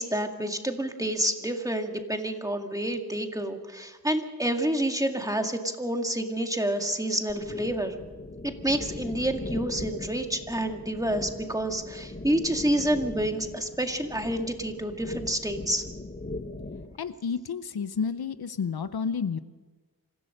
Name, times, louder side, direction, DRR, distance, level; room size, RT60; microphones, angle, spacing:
voice 1, 0.0-8.0 8.4-15.8, right 1 dB, 10° right, 4 dB, 2.1 m, -28 dB
sound 1, 7.3-17.0, left 2 dB, 30° left, 1.3 m, -39 dB
voice 2, 17.0-19.4, left 6 dB, 90° left, 12 dB, 0.8 m, -30 dB
26.0 x 15.5 x 6.6 m, 1.3 s
wide cardioid pair, 70°, 36 cm